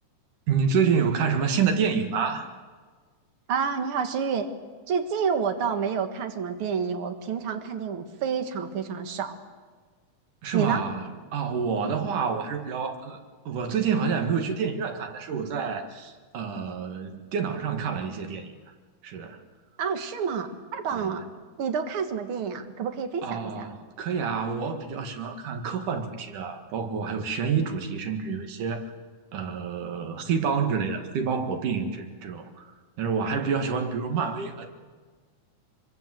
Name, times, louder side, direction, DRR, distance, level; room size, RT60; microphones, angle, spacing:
voice 1, 0.5-2.5 10.4-13.2 13.5-18.5 19.0-19.4 20.9-21.1 23.2-28.9 29.3-32.7 33.0-34.7, right 6 dB, 85° right, 5 dB, 3.5 m, -28 dB
voice 2, 3.5-4.5 4.9-9.4 10.5-10.8 19.8-21.2 21.6-23.7, right 6 dB, 50° right, 7 dB, 2.2 m, -29 dB
25.0 x 23.5 x 7.8 m, 1.5 s
omnidirectional pair, 3.5 m